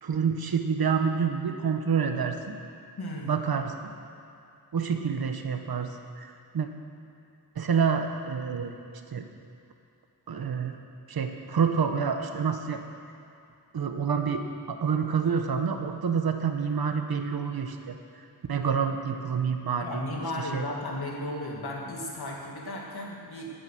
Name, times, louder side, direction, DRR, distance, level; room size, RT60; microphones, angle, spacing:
voice 1, 0.0-2.5 3.3-3.7 4.7-5.9 6.2-6.7 7.6-8.8 9.1-9.2 10.3-10.8 11.1-12.8 13.7-18.0 18.5-20.0 20.5-20.6, right 6 dB, 65° right, 5 dB, 1.2 m, -28 dB
voice 2, 3.0-3.3 19.8-23.5, left 1 dB, 70° left, -2 dB, 2.6 m, -35 dB
18.0 x 9.8 x 6.1 m, 2.5 s
wide cardioid pair, 165°, 40 cm